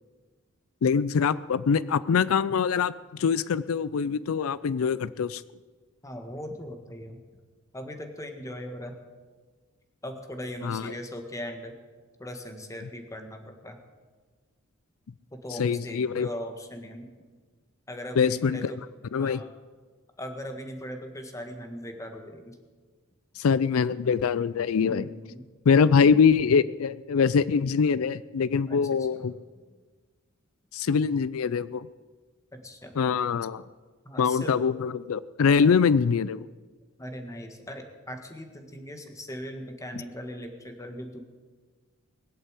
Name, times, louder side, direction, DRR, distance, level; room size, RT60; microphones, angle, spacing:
voice 1, 0.8-5.4 10.6-10.9 15.6-16.3 18.2-18.7 19.1-19.4 23.4-25.1 25.7-29.3 30.7-31.9 33.0-33.6 34.2-36.5, left 6 dB, 90° left, 18 dB, 0.4 m, -23 dB
voice 2, 6.0-7.2 7.7-9.0 10.0-11.7 12.2-13.8 15.3-17.1 17.9-18.8 19.2-19.5 20.2-22.6 24.8-25.4 28.7-28.8 29.1-29.2 32.5-33.0 34.0-34.6 35.6-35.8 37.0-41.2, equal, 15° left, 5 dB, 1.6 m, -39 dB
20.5 x 8.2 x 8.2 m, 1.4 s
head